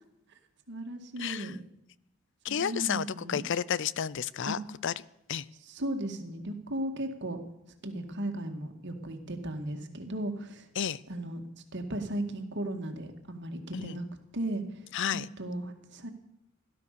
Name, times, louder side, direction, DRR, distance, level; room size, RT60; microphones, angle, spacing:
voice 1, 0.7-1.6 2.5-3.4 4.4-4.6 5.7-7.4 7.8-10.7 11.1-11.4 11.7-14.1 14.3-14.8 15.1-16.1, right 1 dB, 55° right, 6 dB, 2.2 m, -36 dB
voice 2, 1.2-1.6 2.4-4.9 5.3-5.4 10.8-11.0 13.7-14.0 14.9-15.3, left 8 dB, 60° left, 20 dB, 0.5 m, -31 dB
17.0 x 12.5 x 6.8 m, 0.85 s
head